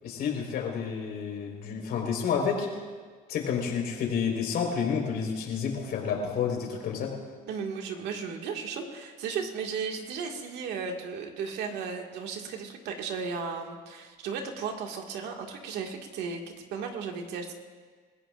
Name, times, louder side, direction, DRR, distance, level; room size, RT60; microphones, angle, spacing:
voice 1, 0.0-2.7 3.3-7.1, left 6 dB, 75° left, 0 dB, 4.6 m, -30 dB
voice 2, 7.5-16.4 16.7-17.5, right 5 dB, 85° right, 2 dB, 2.0 m, -35 dB
29.0 x 16.0 x 2.6 m, 1.5 s
cardioid pair, 110°, 17 cm